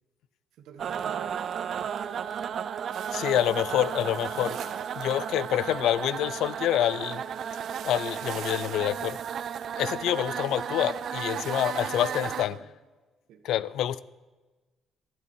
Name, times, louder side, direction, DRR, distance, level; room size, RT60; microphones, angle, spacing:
voice 1, 0.6-1.6 11.6-12.7 13.3-13.4, right 7 dB, 80° right, 6 dB, 1.7 m, -49 dB
sound 1, 0.8-12.4, right 8 dB, 40° right, 0.4 m, -34 dB
sound 2, 2.9-12.4, right 8 dB, 60° right, 1.2 m, -46 dB
voice 2, 3.1-4.6 5.0-7.2 7.8-9.2 9.8-12.6 13.4-14.0, left 12 dB, 65° left, 19 dB, 0.4 m, -27 dB
12.0 x 11.5 x 4.5 m, 1.2 s
cardioid pair, 180°, 0 cm